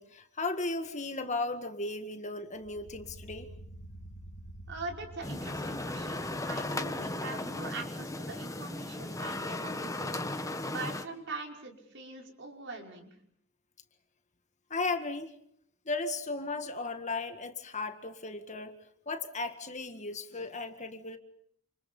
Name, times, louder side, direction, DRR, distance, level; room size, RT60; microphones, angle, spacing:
voice 1, 0.0-3.5 14.7-15.3 15.9-18.8 19.1-21.2, left 3 dB, 35° left, 8 dB, 1.9 m, -35 dB
sound 1, 2.5-7.8, right 1 dB, 70° left, 2.1 m, -50 dB
voice 2, 4.7-10.2 10.7-13.1, right 3 dB, 55° right, 2 dB, 5.6 m, -42 dB
sound 2, 5.2-11.0, left 2 dB, 15° left, 1.5 m, -36 dB
29.0 x 27.5 x 5.6 m, 0.66 s
head